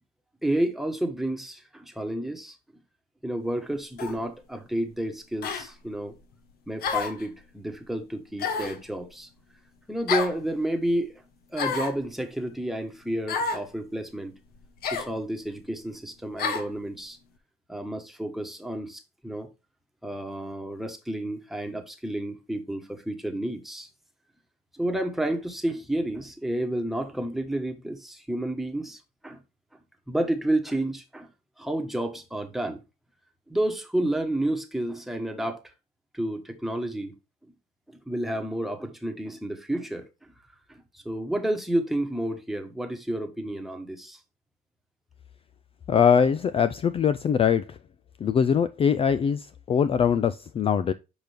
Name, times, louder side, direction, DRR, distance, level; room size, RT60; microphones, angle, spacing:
voice 1, 0.4-2.6 3.2-6.1 6.7-9.3 9.9-11.1 11.5-14.3 14.9-17.2 17.7-19.5 20.0-23.9 24.7-29.4 30.1-31.3 31.6-32.8 33.5-35.6 36.1-37.1 37.9-40.0 40.7-44.2, right 1 dB, ahead, 1.4 m, -30 dB
sound 1, 4.0-4.2 5.4-5.7 6.8-7.2 8.4-8.8 10.1-10.4 11.5-12.0 13.3-13.6 14.8-15.1 16.4-16.7, left 5 dB, 65° left, 1.3 m, -29 dB
voice 2, 45.9-47.8 48.2-50.9, left 7 dB, 35° left, 0.4 m, -22 dB
6.0 x 5.2 x 3.5 m
cardioid pair, 110°, 17 cm